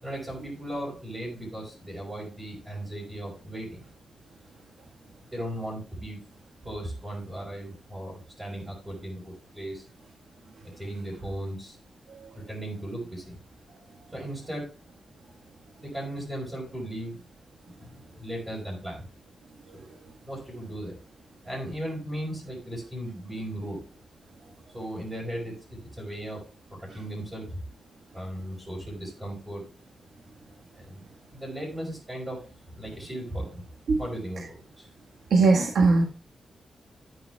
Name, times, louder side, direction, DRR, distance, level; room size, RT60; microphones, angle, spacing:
voice 1, 0.0-3.8 5.3-6.2 6.6-9.8 10.8-11.8 12.3-13.4 14.1-14.7 15.8-17.2 17.8-19.1 19.7-20.0 20.2-21.0 21.4-23.8 24.7-26.4 26.7-27.6 28.1-29.6 30.7-31.0 31.3-32.4 32.7-33.6 34.0-34.9, right 1 dB, 15° right, -6 dB, 4.7 m, -37 dB
voice 2, 35.3-36.0, right 3 dB, 80° right, 0 dB, 1.5 m, -19 dB
13.5 x 9.4 x 2.3 m, 0.34 s
wide cardioid pair, 160°, 0 cm